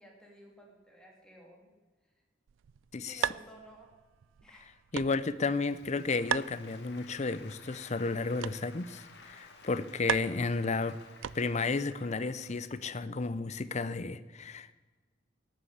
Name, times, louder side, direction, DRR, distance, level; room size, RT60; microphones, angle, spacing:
voice 1, 0.0-1.7 3.0-3.9 4.4-4.7, right 1 dB, 5° left, -1 dB, 2.8 m, -54 dB
sound 1, 2.5-11.8, right 9 dB, 75° right, 0.3 m, -40 dB
voice 2, 2.9-3.3 4.9-11.0 11.3-14.7, left 3 dB, 35° left, 15 dB, 0.6 m, -32 dB
Applause, 5.4-12.9, left 4 dB, 60° left, 2.2 m, -55 dB
13.0 x 10.0 x 8.1 m, 1.3 s
head